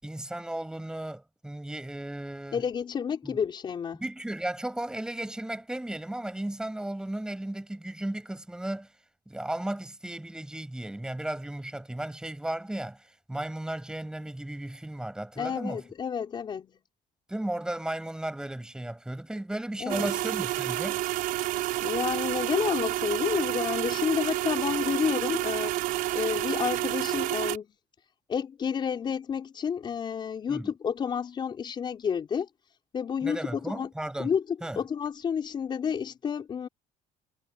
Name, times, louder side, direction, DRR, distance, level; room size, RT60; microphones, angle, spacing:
voice 1, 0.0-2.6 3.2-3.4 4.0-8.9 9.3-15.8 17.3-21.0 30.5-30.7 33.2-34.3 34.6-34.8, right 1 dB, 5° right, 5.9 m, -35 dB
voice 2, 2.5-4.0 15.4-16.8 19.8-20.1 21.8-25.7 26.1-27.7 28.3-32.5 32.9-33.9 34.2-34.4 34.8-36.7, left 7 dB, 30° left, 5.0 m, -30 dB
sound 1, 19.9-27.6, right 16 dB, 70° right, 5.4 m, -29 dB
cardioid pair, 160°, 15 cm